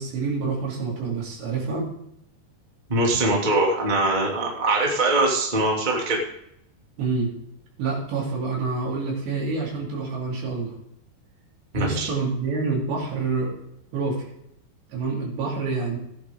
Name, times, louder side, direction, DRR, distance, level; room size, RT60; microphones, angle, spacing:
voice 1, 0.0-1.9 7.0-7.3 7.8-10.7 11.7-13.5 13.9-14.2 14.9-16.0, right 4 dB, 80° right, -4 dB, 5.9 m, -27 dB
voice 2, 2.9-6.2 11.7-12.1, right 2 dB, 15° right, -1 dB, 1.5 m, -22 dB
16.5 x 9.8 x 3.7 m, 0.75 s
omnidirectional pair, 4.9 m